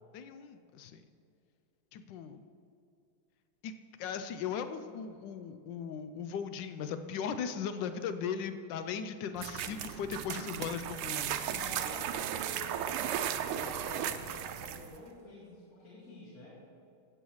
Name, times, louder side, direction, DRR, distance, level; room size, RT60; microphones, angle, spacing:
voice 1, 0.1-1.0 1.9-2.4 3.6-3.7 4.0-11.5, left 7 dB, 75° left, 9 dB, 1.0 m, -38 dB
sound 1, 9.4-15.0, right 9 dB, 80° right, 1.4 m, -36 dB
voice 2, 11.5-13.2 13.4-16.6, left 1 dB, 40° left, -7 dB, 2.4 m, -49 dB
15.0 x 7.9 x 3.1 m, 2.6 s
omnidirectional pair, 2.4 m